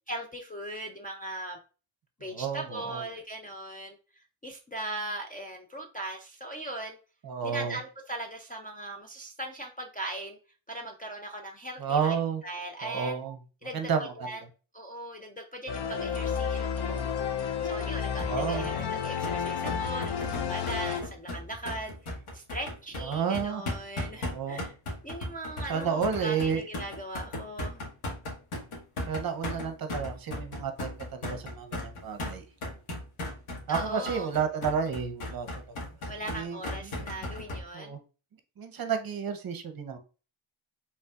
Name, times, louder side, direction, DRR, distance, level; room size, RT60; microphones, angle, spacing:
voice 1, 0.1-1.6 2.2-7.0 7.4-10.4 10.7-12.2 12.4-13.2 13.6-14.4 14.7-17.0 17.6-24.7 25.0-27.9 33.7-34.3 36.1-38.0, right 1 dB, 20° left, 0.3 m, -39 dB
voice 2, 2.3-3.1 7.2-7.8 11.8-12.4 12.8-13.4 13.7-14.3 18.3-18.7 23.0-23.6 24.3-24.6 25.7-26.6 29.1-32.4 33.7-35.5 36.3-36.6 37.0-37.1 37.7-38.0 38.6-40.0, right 6 dB, 45° right, 0.8 m, -31 dB
sound 1, 15.7-21.0, left 7 dB, 55° left, 0.6 m, -31 dB
sound 2, 18.2-37.6, left 1 dB, 85° left, 1.7 m, -36 dB
5.4 x 3.5 x 2.4 m
wide cardioid pair, 175°, 49 cm